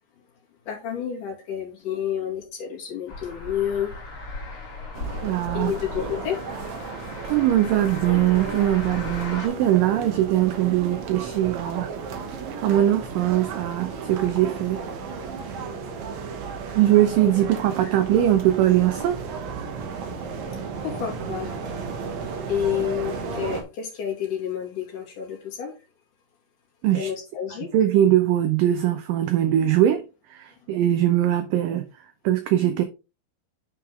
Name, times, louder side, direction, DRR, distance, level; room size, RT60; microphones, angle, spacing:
voice 1, 0.7-4.0 5.5-6.4 15.3-16.2 19.7-25.7 26.9-27.7, left 9 dB, 55° left, 3.4 m, -31 dB
sound 1, 3.1-9.5, left 2 dB, 35° left, 3.0 m, -36 dB
sound 2, 4.9-23.6, right 5 dB, 65° right, 1.9 m, -34 dB
voice 2, 5.2-5.7 7.3-11.9 12.6-14.8 16.8-19.2 26.8-27.1 27.7-30.0 30.3-31.9 32.2-32.8, right 12 dB, 85° right, 1.9 m, -21 dB
9.2 x 4.9 x 3.6 m
omnidirectional pair, 4.7 m